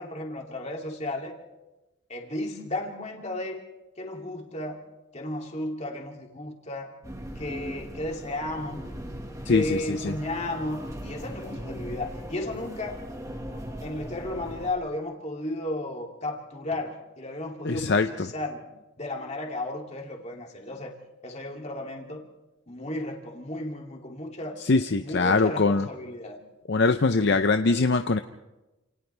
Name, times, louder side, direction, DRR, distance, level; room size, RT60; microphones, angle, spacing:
voice 1, 0.0-1.3 2.1-3.6 4.0-4.8 5.1-6.9 7.4-8.9 9.4-13.0 13.8-18.7 19.0-20.9 21.2-22.3 22.7-24.6 25.0-26.4, left 1 dB, 35° left, 0 dB, 2.7 m, -34 dB
sound 1, 7.0-14.7, equal, 15° right, 1.8 m, -39 dB
voice 2, 9.5-10.1 17.6-18.1 24.7-25.9 26.7-28.2, left 3 dB, 55° left, 8 dB, 0.6 m, -22 dB
29.0 x 28.0 x 3.4 m, 1.0 s
head